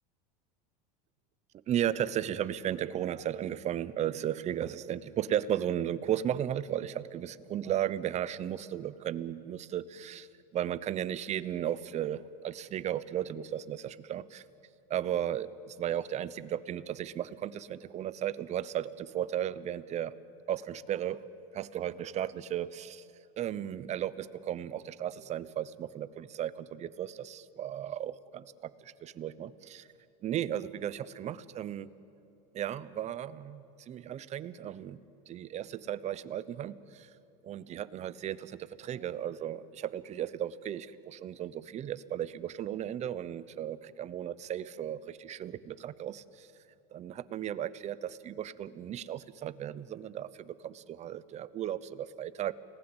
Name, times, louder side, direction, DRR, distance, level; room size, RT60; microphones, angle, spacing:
voice 1, 1.7-10.3 10.5-14.4 14.9-20.1 20.5-21.2 21.5-23.0 23.4-29.9 30.2-31.9 32.5-35.0 35.3-37.1 37.4-46.5 46.9-52.5, right 10 dB, 35° right, 16 dB, 0.9 m, -35 dB
30.0 x 19.5 x 8.1 m, 2.7 s
supercardioid pair, 115°, 21 cm